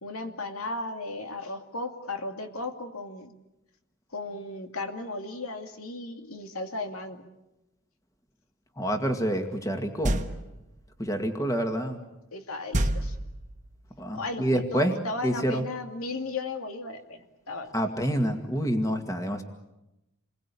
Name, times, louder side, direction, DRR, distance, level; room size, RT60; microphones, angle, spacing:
voice 1, 0.0-3.3 4.1-7.3 12.3-13.2 14.1-17.7, left 2 dB, 80° left, 5 dB, 2.5 m, -35 dB
voice 2, 8.8-10.2 11.0-12.0 14.0-14.9 15.2-15.6 17.7-19.4, equal, 15° left, 5 dB, 2.0 m, -27 dB
sound 1, 10.0-10.7 12.7-13.7, right 1 dB, 35° right, 1.4 m, -28 dB
28.0 x 22.0 x 8.6 m, 0.94 s
head